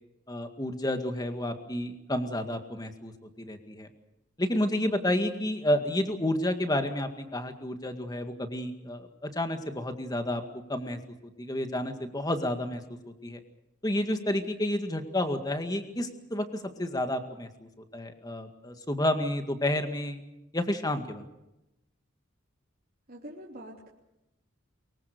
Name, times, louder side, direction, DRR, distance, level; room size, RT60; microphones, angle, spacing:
voice 1, 0.3-3.1 3.4-3.9 4.4-10.4 10.7-11.0 11.4-12.8 13.2-13.4 13.8-20.2 20.5-21.2, left 1 dB, 20° left, 7 dB, 2.0 m, -30 dB
voice 2, 23.1-23.9, right 1 dB, 45° right, -4 dB, 3.2 m, -44 dB
23.5 x 23.0 x 6.7 m, 0.91 s
head